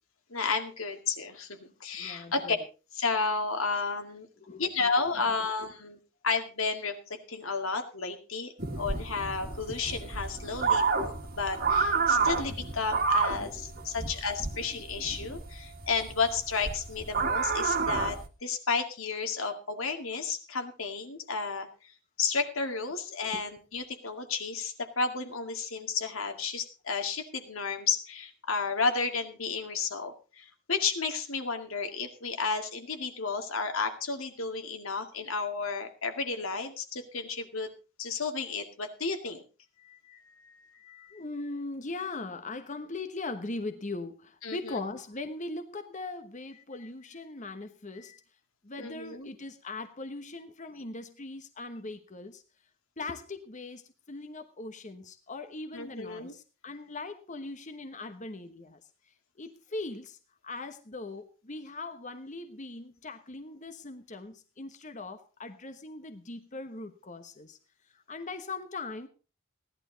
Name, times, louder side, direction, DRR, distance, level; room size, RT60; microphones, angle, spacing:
voice 1, 0.3-2.6 2.9-4.3 4.6-6.0 6.2-21.7 22.2-37.7 38.0-39.4 39.8-41.2 44.4-44.7 48.0-48.2 48.8-49.3 55.7-56.3, left 4 dB, 85° left, 5 dB, 2.2 m, -32 dB
voice 2, 2.0-2.6 4.4-4.9 5.4-5.5 13.4-13.6 23.3-23.4 41.1-48.1 48.6-52.4 53.0-53.8 54.1-58.8 59.4-60.2 60.4-67.6 68.1-69.1, left 2 dB, 35° left, 7 dB, 1.1 m, -40 dB
sound 1, 8.6-18.3, right 4 dB, 45° right, 1.6 m, -29 dB
16.5 x 11.5 x 4.0 m, 0.33 s
head